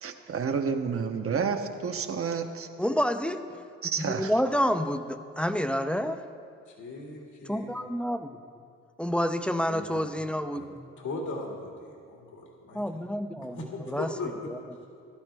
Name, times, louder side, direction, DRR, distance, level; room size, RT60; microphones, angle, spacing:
voice 1, 0.0-2.7 3.8-4.3, right 6 dB, 45° right, 6 dB, 1.0 m, -30 dB
voice 2, 2.8-3.6 4.1-6.2 7.5-8.3 9.0-10.9 12.7-13.6 13.9-14.1, equal, 5° left, 9 dB, 0.6 m, -28 dB
voice 3, 6.7-7.7 9.7-10.0 10.5-10.7 11.0-12.8 13.4-14.5, left 2 dB, 75° left, -1 dB, 2.2 m, -38 dB
16.0 x 12.0 x 3.5 m, 2.4 s
cardioid pair, 90°, 30 cm